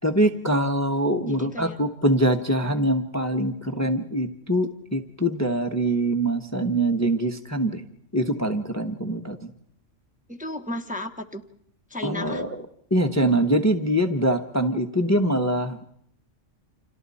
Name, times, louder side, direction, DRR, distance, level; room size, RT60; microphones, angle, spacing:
voice 1, 0.0-7.8 8.1-9.5 12.0-12.6 12.9-15.9, right 1 dB, 15° left, 6 dB, 1.0 m, -24 dB
voice 2, 1.3-1.8 2.7-2.8 10.3-11.4 11.9-12.4, left 1 dB, 5° right, 4 dB, 1.0 m, -34 dB
30.0 x 27.0 x 4.2 m, 0.69 s
omnidirectional pair, 1.3 m